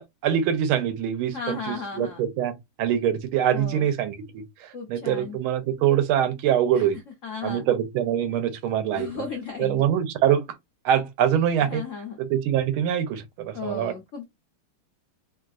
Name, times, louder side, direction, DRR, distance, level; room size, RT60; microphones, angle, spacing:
voice 1, 0.0-7.0 7.4-9.2 9.6-10.5 10.8-11.8 12.2-13.9, right 10 dB, 85° right, 1.5 m, -24 dB
voice 2, 1.3-2.2 3.5-3.8 4.7-5.4 6.7-6.9 7.2-7.6 8.9-9.8 11.7-12.2 13.5-14.3, left 4 dB, 80° left, 0.7 m, -35 dB
3.4 x 2.3 x 2.4 m
omnidirectional pair, 2.3 m